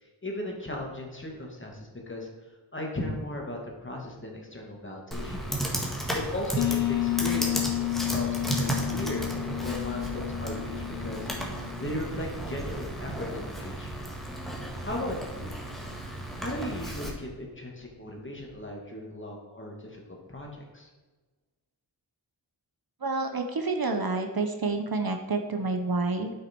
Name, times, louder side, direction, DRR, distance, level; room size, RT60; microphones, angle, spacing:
voice 1, 0.2-2.3 2.7-5.4 5.9-9.3 9.6-11.3 11.8-14.1 14.8-15.6 16.4-20.0 20.3-20.5 20.7-20.9, left 1 dB, 25° left, -1 dB, 2.2 m, -37 dB
Computer keyboard, 5.1-17.1, right 1 dB, ahead, 1.9 m, -34 dB
sound 1, 6.6-12.1, left 19 dB, 85° left, 0.6 m, -31 dB
voice 2, 23.0-26.3, right 3 dB, 50° right, 6 dB, 0.9 m, -28 dB
9.4 x 6.1 x 4.6 m, 1.2 s
wide cardioid pair, 75°, 47 cm